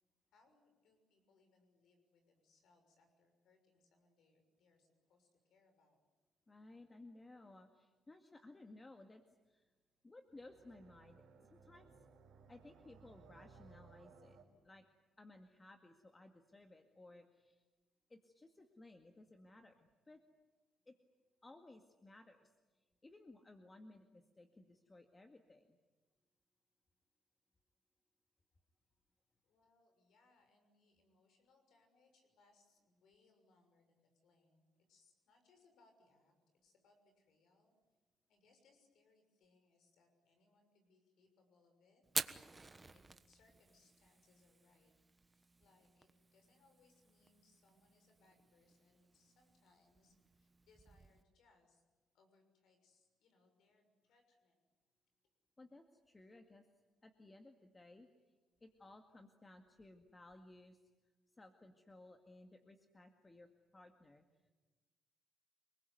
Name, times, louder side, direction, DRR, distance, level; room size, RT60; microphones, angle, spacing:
voice 1, 0.3-6.0 29.4-37.8 38.3-42.0 42.5-51.8 52.1-54.6, left 3 dB, 75° left, 5 dB, 6.3 m, -73 dB
voice 2, 6.5-9.7 10.0-12.1 12.5-14.4 14.6-14.9 15.2-17.6 18.1-20.2 20.9-21.0 21.4-25.8 55.6-56.7 57.0-58.3 58.6-60.9 61.3-64.3, left 2 dB, 20° left, 5 dB, 2.0 m, -59 dB
sound 1, 10.3-14.4, right 5 dB, 75° right, 5.0 m, -62 dB
Fire, 42.0-51.2, right 3 dB, 20° right, 1.3 m, -49 dB
29.0 x 21.0 x 9.5 m, 1.2 s
cardioid pair, 90°, 0 cm